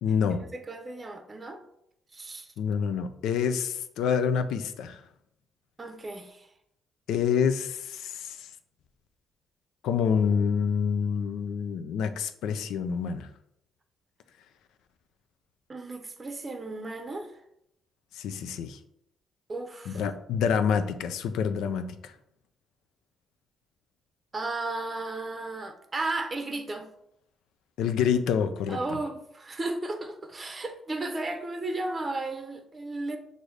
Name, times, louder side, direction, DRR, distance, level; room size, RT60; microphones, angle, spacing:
voice 1, 0.0-0.4 2.6-5.0 7.1-8.5 9.8-13.3 18.1-18.8 19.9-22.1 27.8-29.0, left 7 dB, 85° left, 10 dB, 0.4 m, -27 dB
voice 2, 0.5-1.6 2.1-2.5 5.8-6.5 15.7-17.3 19.5-20.0 24.3-26.9 28.7-33.2, right 2 dB, 30° right, 6 dB, 0.6 m, -34 dB
6.3 x 2.7 x 3.2 m, 0.75 s
cardioid pair, 90°, 0 cm